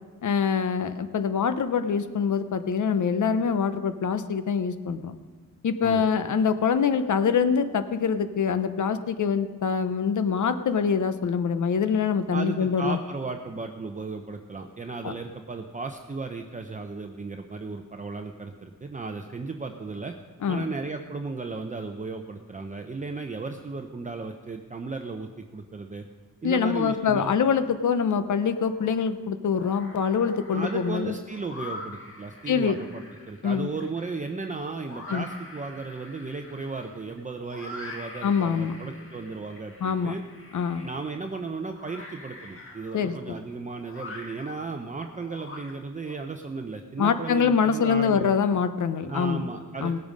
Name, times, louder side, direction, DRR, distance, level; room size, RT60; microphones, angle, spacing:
voice 1, 0.2-5.1 5.6-13.0 15.0-15.1 20.4-20.7 26.4-31.1 32.5-32.8 33.4-33.7 35.1-35.2 38.2-38.8 39.8-40.2 40.5-40.9 42.9-43.4 47.0-49.4 49.8-50.0, left 6 dB, 65° left, 11 dB, 0.9 m, -24 dB
voice 2, 12.3-20.1 20.5-26.0 26.4-27.3 30.5-40.2 40.8-48.3 49.1-50.0, right 4 dB, 25° right, 4 dB, 0.7 m, -35 dB
sound 1, 28.4-29.0 29.4-46.1, left 2 dB, 40° left, 1.9 m, -45 dB
18.5 x 8.6 x 5.2 m, 1.5 s
wide cardioid pair, 115°, 33 cm